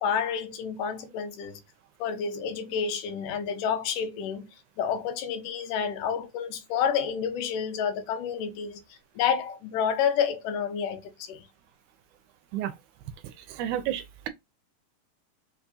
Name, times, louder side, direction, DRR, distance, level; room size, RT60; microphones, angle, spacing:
voice 1, 0.0-1.6 2.0-4.5 4.8-11.5, left 7 dB, 85° left, 2.5 m, -29 dB
voice 2, 13.6-14.3, right 11 dB, 80° right, 1.9 m, -30 dB
5.2 x 3.5 x 2.7 m
omnidirectional pair, 3.7 m